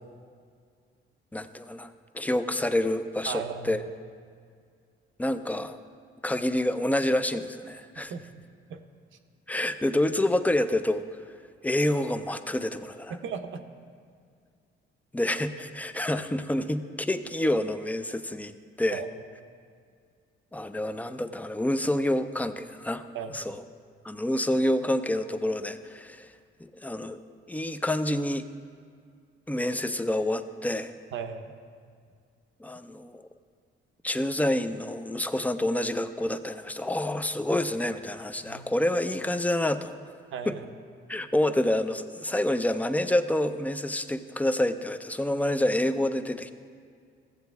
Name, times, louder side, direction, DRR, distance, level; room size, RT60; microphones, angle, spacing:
voice 1, 1.3-3.8 5.2-5.8 6.2-8.1 9.5-11.0 11.6-13.2 15.1-18.5 18.8-19.0 20.5-23.1 23.3-23.6 24.0-26.3 26.6-27.2 27.5-28.5 29.5-30.9 32.6-33.2 34.0-39.9 40.5-40.6 41.1-46.5, left 1 dB, 10° left, 10 dB, 0.5 m, -28 dB
voice 2, 3.3-3.8 8.1-8.4 8.7-8.8 13.1-13.6 18.9-19.1 23.1-23.4 31.1-31.5 38.5-38.6 40.3-40.7, right 6 dB, 75° right, 7 dB, 0.8 m, -36 dB
15.0 x 7.8 x 3.5 m, 2.2 s
cardioid pair, 90°, 20 cm